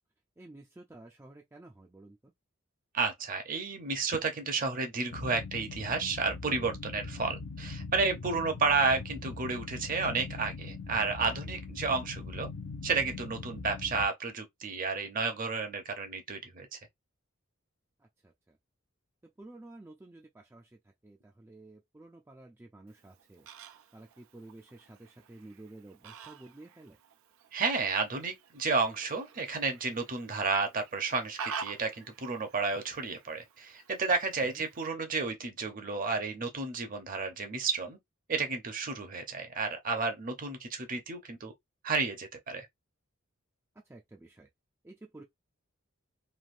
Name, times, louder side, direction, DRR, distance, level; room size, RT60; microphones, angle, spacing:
voice 1, 0.4-2.3 8.5-8.6 18.0-18.6 19.2-23.5 23.9-27.0 34.5-34.6 43.9-44.5 44.8-45.2, right 2 dB, 10° right, 0.4 m, -52 dB
voice 2, 2.9-12.5 12.8-16.8 27.5-38.0 38.3-41.5 41.8-42.7, right 4 dB, 40° right, 0.8 m, -32 dB
sound 1, 5.1-14.1, left 4 dB, 75° left, 0.6 m, -41 dB
Fowl, 22.9-34.9, right 5 dB, 80° right, 0.4 m, -48 dB
3.3 x 2.6 x 2.5 m
head